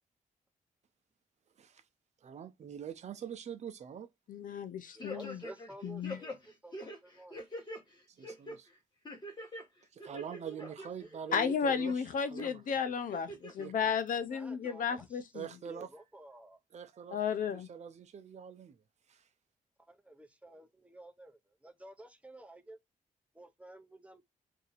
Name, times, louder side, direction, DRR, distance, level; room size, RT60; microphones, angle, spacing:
voice 1, 2.2-4.1 8.1-8.7 9.9-12.0 12.3-12.6 13.3-13.7 15.3-15.9 16.7-17.2 17.5-18.8 19.1-19.2, right 8 dB, 50° right, 0.6 m, -44 dB
voice 2, 4.3-5.4 5.8-6.2 11.3-15.5 17.1-17.7, left 6 dB, 65° left, 0.6 m, -33 dB
voice 3, 4.9-6.3 6.6-7.4 10.0-10.8 14.3-15.1 15.6-16.6 19.9-22.8 23.3-24.2, right 1 dB, 10° right, 0.7 m, -52 dB
sound 1, 5.0-5.7 6.0-7.8 8.2-8.6 9.0-9.6 10.0-10.9 11.3-11.9 12.4-12.5 13.1-13.7 14.1-14.2, left 1 dB, 30° left, 1.4 m, -44 dB
2.7 x 2.7 x 4.0 m
cardioid pair, 100°, 15 cm